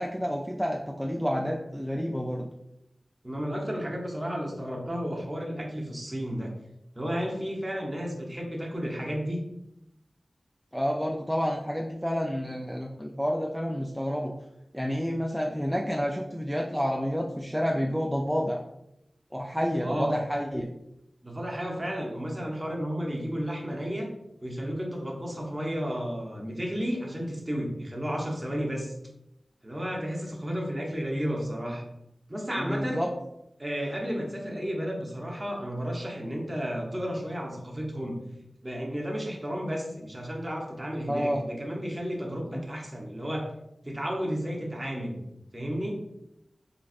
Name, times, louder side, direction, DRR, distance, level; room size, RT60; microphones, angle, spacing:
voice 1, 0.0-2.5 10.7-14.3 14.7-18.6 19.3-20.7 32.6-33.1 41.1-41.4 42.5-42.6, equal, ahead, 0 dB, 0.3 m, -29 dB
voice 2, 3.2-6.5 6.9-9.4 19.8-20.2 21.2-24.1 24.4-28.9 29.6-31.8 32.3-33.0 33.6-38.2 38.6-43.5 43.8-45.2 45.5-46.0, equal, 25° right, -1 dB, 0.8 m, -32 dB
4.0 x 2.3 x 2.4 m, 0.83 s
wide cardioid pair, 50°, 0 cm